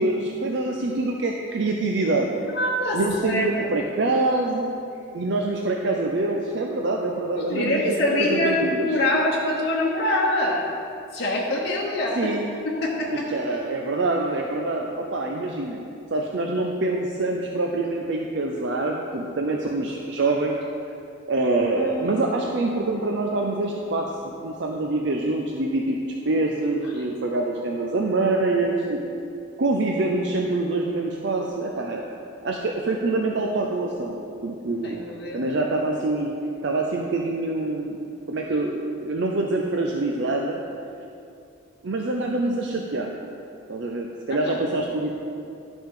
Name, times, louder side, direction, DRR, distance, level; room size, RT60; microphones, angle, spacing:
voice 1, 0.0-2.3 2.9-4.7 5.1-8.9 12.2-12.5 13.1-15.8 16.1-20.5 21.3-26.0 26.2-29.0 29.6-32.0 32.4-35.0 35.3-36.3 36.6-38.0 38.3-40.6 41.8-43.1 43.7-45.1, right 2 dB, 60° right, 0 dB, 0.5 m, -25 dB
voice 2, 2.5-3.7 7.4-10.7 11.1-12.2 12.6-13.3 34.8-35.5 44.5-44.6, left 1 dB, 50° left, -4 dB, 1.0 m, -24 dB
Piano, 21.8-36.7, right 1 dB, 10° left, 0.8 m, -46 dB
11.5 x 5.3 x 3.8 m, 2.5 s
head